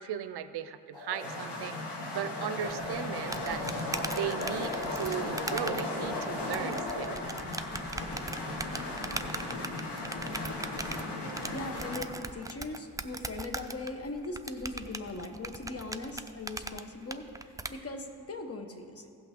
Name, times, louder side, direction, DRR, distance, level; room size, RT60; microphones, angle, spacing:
voice 1, 0.0-1.8 2.1-3.7 4.1-7.2, right 10 dB, 70° right, 11 dB, 0.5 m, -37 dB
sound 1, 0.9-12.0, left 2 dB, 85° left, 1.4 m, -36 dB
sound 2, 2.7-17.7, right 2 dB, 10° right, 0.3 m, -40 dB
voice 2, 11.5-19.1, left 2 dB, 35° left, 5 dB, 1.0 m, -40 dB
16.0 x 5.8 x 3.6 m, 2.6 s
cardioid pair, 75°, 41 cm